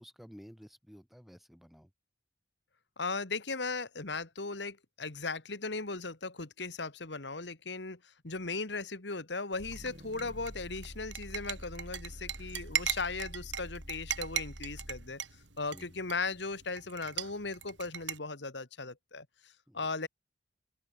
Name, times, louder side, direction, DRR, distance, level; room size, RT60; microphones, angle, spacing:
voice 1, 0.0-1.9 15.7-16.0 19.7-19.9, equal, ahead, 6.0 m, -53 dB
voice 2, 3.0-15.2 15.6-20.1, left 3 dB, 70° left, 2.1 m, -37 dB
sound 1, 9.5-18.2, right 9 dB, 85° right, 4.0 m, -40 dB
sound 2, 9.6-15.2, equal, 50° right, 7.8 m, -47 dB
open air
head